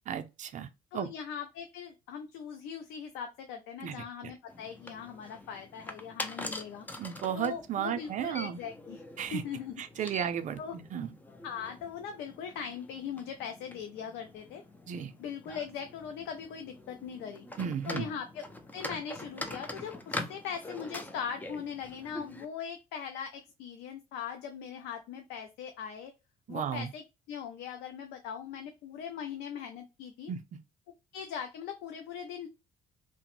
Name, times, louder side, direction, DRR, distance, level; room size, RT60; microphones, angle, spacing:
voice 1, 0.1-0.7 0.9-1.1 3.8-4.3 7.0-8.6 9.2-9.4 9.8-11.1 14.9-15.1 17.6-18.1 26.5-26.9 30.3-30.4, right 9 dB, 50° right, 0.4 m, -34 dB
voice 2, 0.9-6.9 7.3-9.0 9.3-10.2 10.6-10.8 11.0-11.1 11.4-14.6 15.2-17.5 17.9-18.4 18.7-26.1 26.5-30.3 31.1-32.5, left 7 dB, 85° left, 0.5 m, -40 dB
sound 1, 4.5-22.5, left 2 dB, 10° left, 0.3 m, -44 dB
2.9 x 2.0 x 3.0 m
cardioid pair, 110°, 17 cm